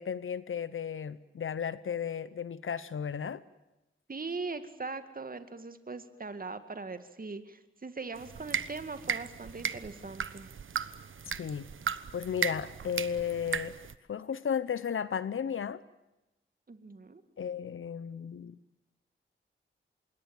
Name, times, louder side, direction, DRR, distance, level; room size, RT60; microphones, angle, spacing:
voice 1, 0.0-3.4 11.4-11.7 12.1-13.8 14.1-15.8 17.4-18.6, left 7 dB, 75° left, 16 dB, 0.9 m, -34 dB
voice 2, 4.1-10.5 16.7-17.2, right 4 dB, 45° right, 10 dB, 2.3 m, -40 dB
sound 1, 8.2-13.9, right 7 dB, 75° right, 1.1 m, -36 dB
26.5 x 22.5 x 9.0 m, 0.96 s
cardioid pair, 65°, 21 cm